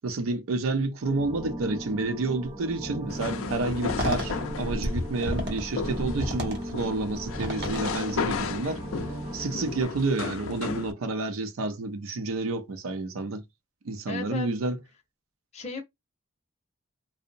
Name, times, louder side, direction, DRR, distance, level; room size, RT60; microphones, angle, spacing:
voice 1, 0.0-8.8 9.3-13.4 13.8-14.8, right 3 dB, 90° right, 0.5 m, -29 dB
sound 1, 1.0-9.8, right 1 dB, 25° right, 0.7 m, -37 dB
sound 2, 3.1-10.9, left 6 dB, 85° left, 0.4 m, -35 dB
sound 3, 3.6-8.6, equal, 60° right, 0.8 m, -33 dB
voice 2, 14.1-14.6 15.5-15.8, left 4 dB, 30° left, 0.6 m, -35 dB
2.7 x 2.0 x 2.5 m
head